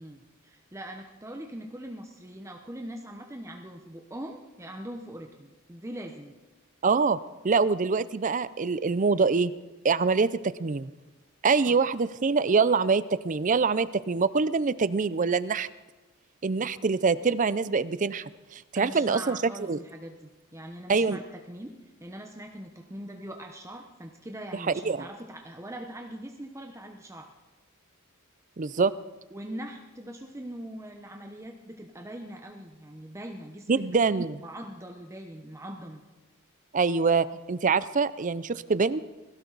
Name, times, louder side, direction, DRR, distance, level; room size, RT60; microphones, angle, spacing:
voice 1, 0.0-6.3 11.7-11.9 18.7-27.3 29.3-33.8 34.4-36.0, right 1 dB, 15° right, 3 dB, 0.9 m, -42 dB
voice 2, 6.8-7.2 7.4-9.5 9.8-10.9 11.4-15.7 16.4-19.4 19.7-19.8 20.9-21.2 24.8-25.0 28.6-28.9 33.7-34.4 36.7-39.0, right 4 dB, 35° right, 16 dB, 0.5 m, -25 dB
21.0 x 17.0 x 4.0 m, 1.1 s
head